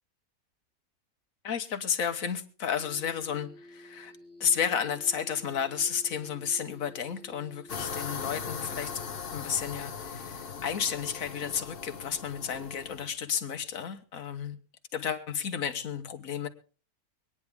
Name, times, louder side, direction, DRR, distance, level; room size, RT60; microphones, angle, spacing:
voice 1, 1.4-8.9 9.3-14.6 14.9-16.5, left 7 dB, 60° left, 8 dB, 1.6 m, -32 dB
sound 1, 2.8-9.1, left 1 dB, 75° right, 6.3 m, -52 dB
sound 2, 7.7-13.1, left 6 dB, 40° left, 1.1 m, -39 dB
24.5 x 9.9 x 3.5 m, 0.38 s
omnidirectional pair, 1.6 m